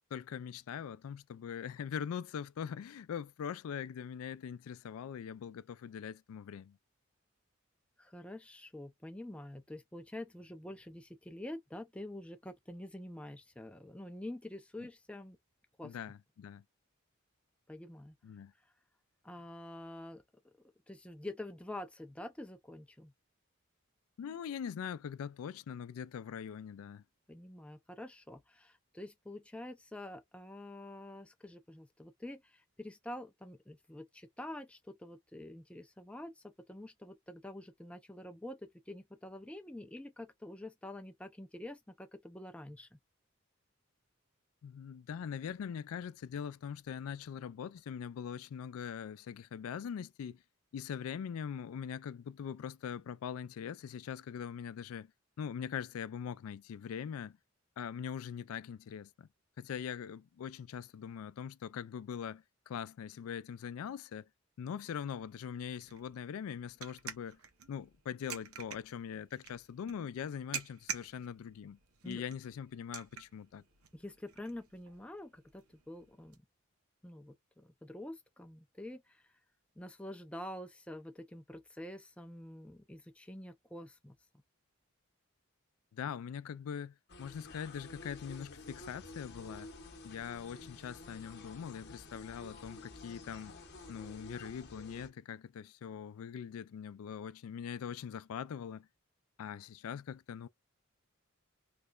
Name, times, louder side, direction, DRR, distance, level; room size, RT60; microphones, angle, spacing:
voice 1, 0.1-6.8 15.8-16.6 18.2-18.5 24.2-27.0 44.6-50.4 50.7-55.1 55.4-57.4 57.8-59.3 59.6-64.3 64.6-67.4 67.7-71.8 72.1-73.6 85.9-89.7 90.0-93.6 93.9-98.9 99.4-100.5, left 8 dB, 85° left, 0.3 m, -42 dB
voice 2, 8.0-15.4 15.8-16.0 17.7-18.2 19.2-20.5 20.9-23.1 27.3-43.0 72.0-72.2 73.9-76.4 77.0-79.3 79.8-84.2, left 1 dB, 5° left, 0.4 m, -47 dB
sound 1, 65.1-76.4, right 7 dB, 90° right, 0.8 m, -49 dB
sound 2, 87.1-95.1, left 2 dB, 50° left, 0.8 m, -51 dB
3.3 x 3.1 x 2.3 m
head